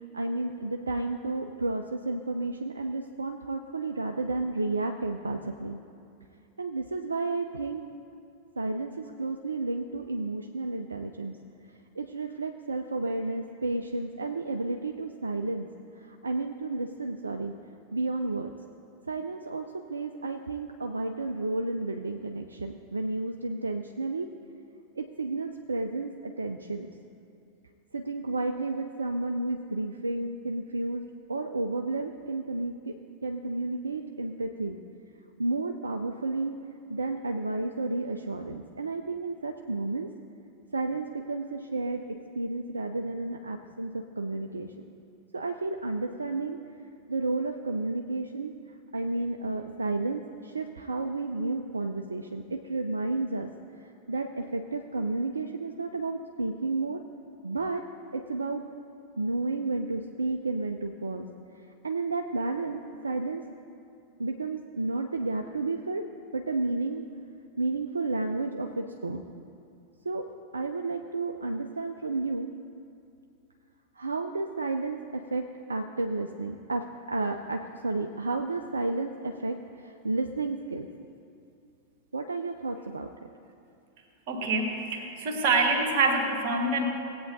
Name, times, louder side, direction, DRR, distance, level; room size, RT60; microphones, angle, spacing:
voice 1, 0.1-5.8 6.6-7.8 8.6-11.4 12.0-15.7 16.0-17.5 17.9-18.5 19.1-24.3 25.0-26.9 27.9-32.9 33.2-34.8 35.4-36.6 36.9-40.1 40.7-44.7 45.3-46.6 47.1-48.6 48.9-53.5 53.8-57.0 57.4-57.8 58.1-58.6 59.2-61.3 61.8-63.4 64.2-66.1 66.3-67.1 67.6-69.2 70.0-70.3 70.5-72.5 74.0-80.9 82.1-83.1, right 3 dB, 75° right, 5 dB, 0.4 m, -32 dB
voice 2, 84.3-86.8, right 3 dB, 45° right, 1 dB, 1.6 m, -26 dB
17.5 x 8.5 x 2.7 m, 2.5 s
figure-of-eight pair, 90°, 0 cm